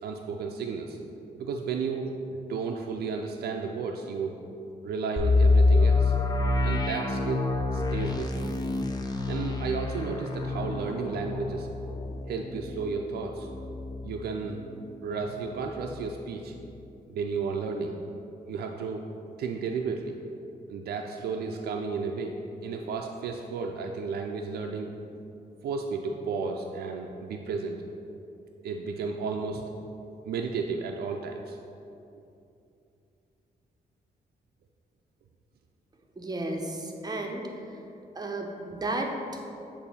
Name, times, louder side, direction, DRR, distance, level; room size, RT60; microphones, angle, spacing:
voice 1, 0.0-2.1 2.5-4.3 4.8-6.1 6.6-7.5 7.7-8.5 9.3-11.7 12.3-13.5 14.0-14.6 15.0-16.5 17.1-18.1 18.5-19.0 19.4-20.2 20.7-25.1 25.6-27.8 28.6-29.7 30.2-31.6, right 5 dB, 80° right, 2 dB, 0.4 m, -33 dB
sound 1, 5.2-14.9 15.2-15.3 15.8-16.1, left 3 dB, 25° left, 0.6 m, -27 dB
voice 2, 36.2-37.4 38.1-39.4, right 2 dB, 25° right, 2 dB, 0.7 m, -33 dB
6.8 x 2.6 x 5.5 m, 2.7 s
cardioid pair, 80°, 16 cm